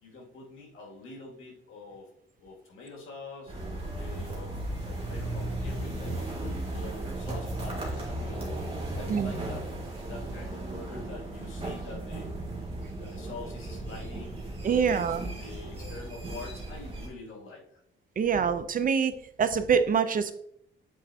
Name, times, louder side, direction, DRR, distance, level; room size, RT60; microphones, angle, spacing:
voice 1, 0.0-2.1 2.4-3.5 3.9-9.7 10.0-12.4 12.9-14.4 14.7-17.8, left 3 dB, 75° left, -2 dB, 2.1 m, -45 dB
sound 1, 3.5-17.1, right 1 dB, 25° right, 1.9 m, -36 dB
voice 2, 14.6-15.2 18.2-19.1 19.4-20.3, right 6 dB, 40° right, 11 dB, 0.4 m, -25 dB
8.4 x 4.4 x 2.7 m, 0.70 s
cardioid pair, 140°, 21 cm